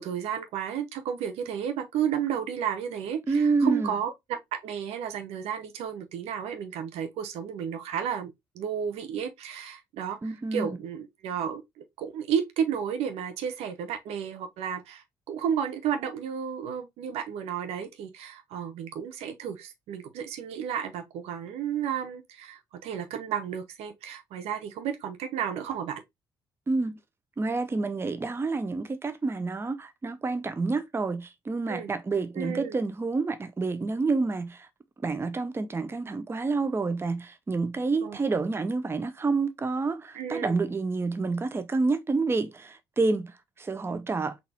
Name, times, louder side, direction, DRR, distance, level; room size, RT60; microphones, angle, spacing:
voice 1, 0.0-26.0 31.7-31.9 32.4-32.7 38.0-38.2 40.1-40.6, right 8 dB, 65° right, 0.8 m, -32 dB
voice 2, 3.3-3.9 10.2-10.8 26.7-27.0 27.4-34.7 35.0-44.4, right 3 dB, 20° right, 0.6 m, -28 dB
4.0 x 3.5 x 2.8 m
figure-of-eight pair, 45°, 11 cm